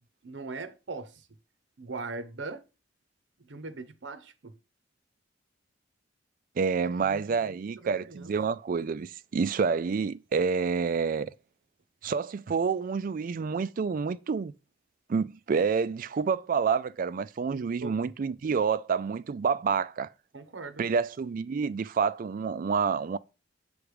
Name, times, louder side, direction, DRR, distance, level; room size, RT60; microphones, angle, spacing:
voice 1, 0.2-1.3 1.8-2.7 3.4-4.6 7.0-8.3 17.5-18.1 19.7-19.8 20.3-20.8, right 3 dB, 75° right, 0.8 m, -41 dB
voice 2, 6.6-11.3 12.0-14.5 15.1-20.1 20.8-23.2, right 5 dB, 45° right, 0.3 m, -28 dB
7.0 x 3.4 x 4.9 m
head